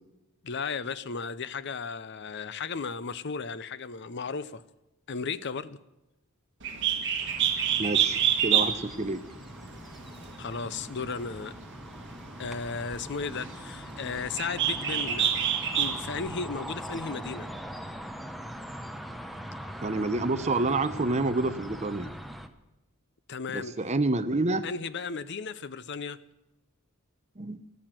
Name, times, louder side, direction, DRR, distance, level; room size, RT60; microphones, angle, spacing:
voice 1, 0.4-4.6 5.1-5.8 10.4-11.5 12.4-15.3 15.8-17.5 23.3-23.8 24.6-26.2, left 5 dB, 50° left, 0.7 m, -35 dB
Bird, 6.6-16.2, right 9 dB, 55° right, 1.7 m, -29 dB
sound 1, 7.2-22.5, equal, ahead, 0.8 m, -42 dB
voice 2, 7.8-9.2 19.8-22.1 23.5-24.7 27.4-27.7, right 2 dB, 30° right, 0.8 m, -28 dB
13.5 x 13.0 x 7.6 m
head